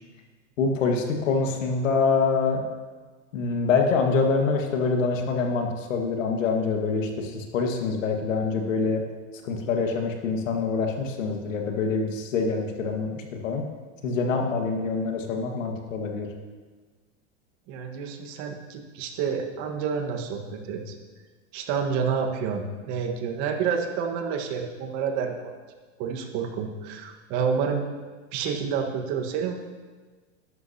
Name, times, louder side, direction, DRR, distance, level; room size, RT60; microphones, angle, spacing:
voice 1, 0.6-2.6 3.3-9.0 9.4-13.6 14.0-16.3, left 4 dB, 85° left, 3 dB, 1.9 m, -25 dB
voice 2, 17.7-21.0 21.5-25.5 26.0-27.9 28.3-29.5, right 6 dB, 50° right, 3 dB, 1.7 m, -29 dB
13.5 x 11.0 x 2.9 m, 1.4 s
supercardioid pair, 125°, 38 cm